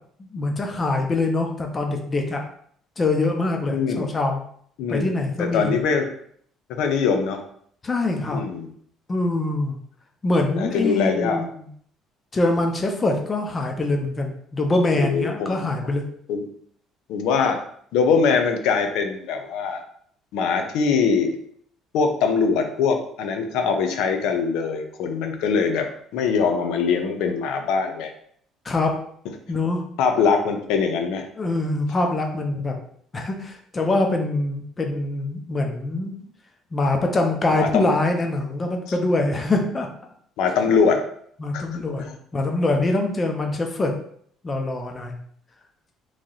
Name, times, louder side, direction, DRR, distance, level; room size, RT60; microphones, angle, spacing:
voice 1, 0.2-2.4 3.0-4.4 4.9-5.8 7.8-8.4 9.1-9.8 10.2-11.7 12.3-16.0 28.6-28.9 29.5-29.8 31.4-32.8 33.1-36.1 36.7-39.9 41.4-42.0 42.3-43.9 44.4-45.1, left 2 dB, 20° left, 3 dB, 0.5 m, -24 dB
voice 2, 3.7-4.2 4.8-6.1 6.7-7.4 8.3-8.7 10.5-11.4 14.9-15.6 16.3-16.5 17.1-17.6 17.9-19.8 20.3-21.4 21.9-25.9 26.1-28.1 30.0-31.3 37.5-37.9 40.4-41.0 41.5-41.7 42.0-42.1, left 5 dB, 75° left, 5 dB, 0.6 m, -22 dB
3.1 x 2.8 x 3.8 m, 0.63 s
cardioid pair, 170°, 0 cm